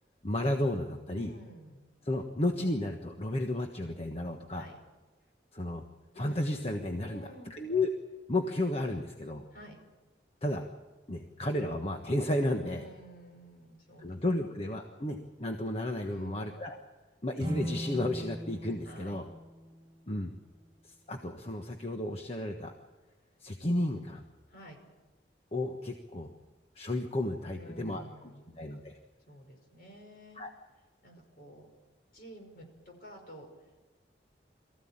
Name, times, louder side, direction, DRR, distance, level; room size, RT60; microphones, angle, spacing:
voice 1, 0.2-1.3 2.0-4.7 5.5-5.8 6.1-7.9 8.3-9.5 10.4-10.6 11.1-12.8 14.0-16.8 17.2-19.3 20.1-20.3 20.8-22.7 23.4-24.2 25.5-26.3 26.7-28.0 28.6-28.9 30.4-30.5, left 1 dB, 35° left, 3 dB, 1.3 m, -32 dB
voice 2, 1.1-1.9 4.5-4.8 7.0-7.6 9.5-9.8 12.6-14.5 16.0-16.6 18.8-19.2 24.5-24.8 27.5-28.5 29.3-30.4 31.0-31.7 32.1-33.5, equal, 55° left, 2 dB, 5.3 m, -51 dB
sound 1, 17.4-20.6, equal, 25° right, 2.6 m, -40 dB
23.0 x 15.0 x 8.9 m, 1.2 s
head